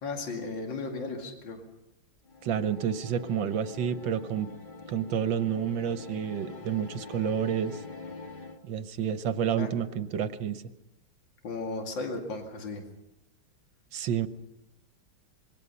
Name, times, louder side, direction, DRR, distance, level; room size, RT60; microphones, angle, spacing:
voice 1, 0.0-1.6 9.6-9.7 11.4-12.8, left 3 dB, 60° left, 2 dB, 3.1 m, -35 dB
sound 1, 2.3-8.6, left 3 dB, 25° left, 1.7 m, -44 dB
voice 2, 2.4-4.5 4.9-7.8 8.6-10.6 13.9-14.3, right 8 dB, 65° right, 11 dB, 1.6 m, -29 dB
26.0 x 22.0 x 5.5 m, 0.88 s
omnidirectional pair, 2.3 m